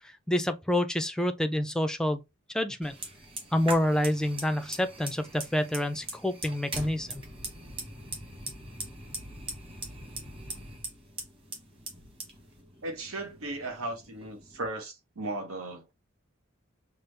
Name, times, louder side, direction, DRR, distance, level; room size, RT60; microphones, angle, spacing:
voice 1, 0.3-2.2 2.5-3.0 3.5-7.2, left 1 dB, 5° left, 0.4 m, -28 dB
Fire, 2.8-14.7, right 1 dB, 25° right, 1.4 m, -42 dB
voice 2, 12.8-15.9, right 2 dB, 85° right, 1.1 m, -36 dB
5.9 x 2.0 x 3.2 m
head